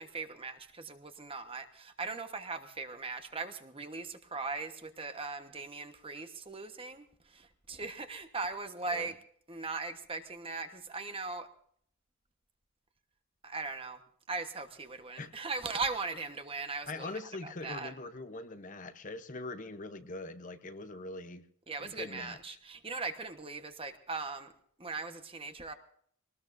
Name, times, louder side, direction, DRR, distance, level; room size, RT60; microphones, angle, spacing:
voice 1, 0.0-9.2 9.5-11.5 13.4-14.0 14.3-17.9 21.7-24.5 24.8-25.7, right 4 dB, 25° right, 7 dB, 1.2 m, -39 dB
voice 2, 16.9-21.4 21.8-22.6, left 2 dB, 35° left, 9 dB, 0.8 m, -42 dB
22.5 x 19.5 x 2.6 m, 0.62 s
head